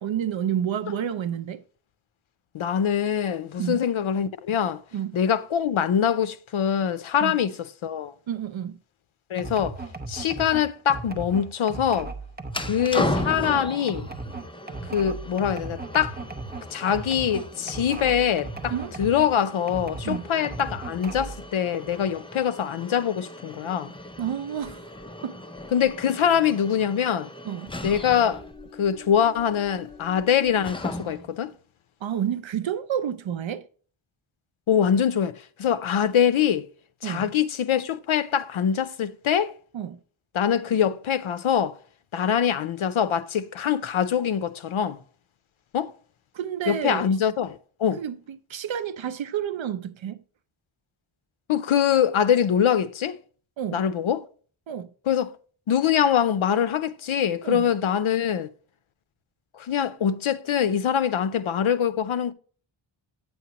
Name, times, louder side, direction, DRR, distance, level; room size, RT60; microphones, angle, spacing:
voice 1, 0.0-1.6 3.6-3.8 4.9-5.2 7.2-7.4 8.3-8.8 18.7-18.9 20.0-20.3 24.2-24.9 25.2-25.4 27.4-27.7 32.0-33.7 37.0-37.3 39.7-40.0 46.3-47.2 48.0-50.2 53.6-53.8 54.7-54.9 57.4-57.6, right 9 dB, 65° right, 0.6 m, -30 dB
voice 2, 2.5-4.8 5.1-7.6 7.8-8.1 9.3-9.8 10.1-12.1 12.6-14.1 14.9-16.2 16.7-23.9 25.7-27.3 27.8-28.4 28.8-31.5 34.7-36.7 37.0-39.5 40.3-41.8 42.1-45.0 45.7-45.9 46.7-48.0 51.5-53.2 53.7-54.2 55.1-55.3 55.7-58.5 59.5-62.3, left 8 dB, 75° left, 0.7 m, -24 dB
sound 1, 9.4-19.3 19.7-21.5, right 3 dB, 20° right, 0.7 m, -36 dB
sound 2, 12.5-31.4, left 1 dB, 10° left, 0.5 m, -37 dB
9.3 x 7.1 x 2.9 m
wide cardioid pair, 105°, 49 cm